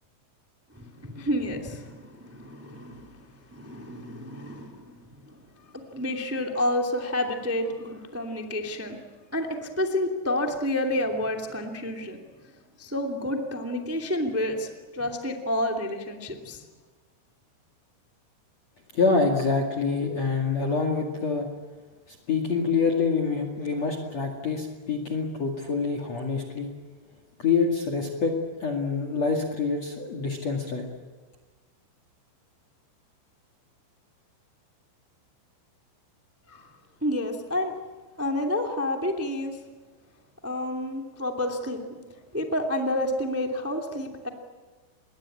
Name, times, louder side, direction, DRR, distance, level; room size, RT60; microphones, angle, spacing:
voice 1, 0.7-5.4 5.6-9.0 9.3-12.2 12.8-16.6 36.5-36.7 37.0-37.7 38.2-39.6 40.4-41.8 42.3-44.3, left 1 dB, 20° right, 3 dB, 0.3 m, -29 dB
voice 2, 18.9-21.5 22.1-26.7 27.4-28.3 28.6-30.9, left 4 dB, 45° left, 4 dB, 2.7 m, -26 dB
27.5 x 22.0 x 8.7 m, 1.4 s
omnidirectional pair, 5.4 m